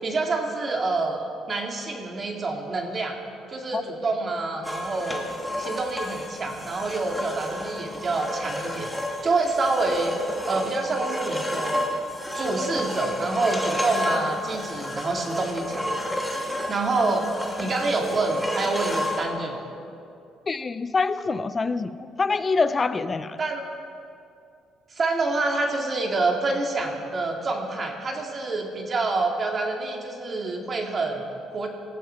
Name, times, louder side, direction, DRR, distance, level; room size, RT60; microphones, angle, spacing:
voice 1, 0.0-3.2 3.5-5.3 5.6-10.2 10.5-11.8 12.3-15.9 16.7-19.7 23.4-23.7 24.9-31.7, right 3 dB, 40° right, 2 dB, 2.2 m, -27 dB
sound 1, 4.6-19.3, left 1 dB, 5° left, 2.2 m, -31 dB
voice 2, 20.5-23.4, left 4 dB, 30° left, 13 dB, 0.7 m, -25 dB
19.0 x 15.0 x 4.5 m, 2.5 s
cardioid pair, 95°, 0 cm